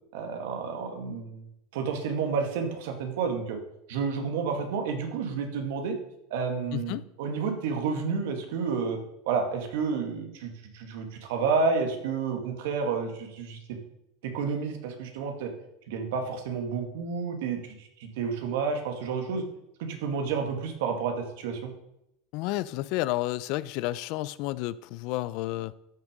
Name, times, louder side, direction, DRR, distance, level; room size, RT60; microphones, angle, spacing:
voice 1, 0.1-1.5 1.7-3.6 3.9-6.0 6.3-9.0 9.3-13.6 14.2-15.5 15.9-19.4 19.8-21.7, right 5 dB, 75° right, 2.2 m, -30 dB
voice 2, 6.7-7.0 22.3-25.7, left 17 dB, 55° left, 0.5 m, -31 dB
13.0 x 6.4 x 5.2 m
supercardioid pair, 145°, 0 cm